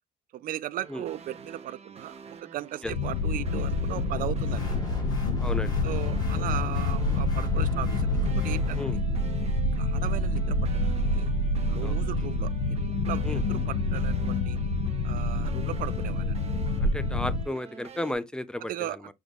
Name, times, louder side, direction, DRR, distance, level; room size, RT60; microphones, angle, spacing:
voice 1, 0.3-4.8 5.8-9.0 9.8-11.3 11.7-12.8 13.1-14.6 15.0-16.4 18.6-19.1, right 13 dB, 55° right, 0.4 m, -37 dB
sound 1, 0.8-18.1, right 6 dB, 40° right, 0.9 m, -47 dB
sound 2, 2.8-17.5, left 2 dB, 90° left, 0.7 m, -27 dB
sound 3, 4.5-8.9, right 1 dB, 25° left, 1.4 m, -39 dB
voice 2, 5.4-5.8 8.8-9.0 11.8-12.0 12.2-12.3 13.2-13.4 16.8-19.0, left 1 dB, 5° left, 0.4 m, -34 dB
6.1 x 3.4 x 2.4 m
cardioid pair, 110°, 17 cm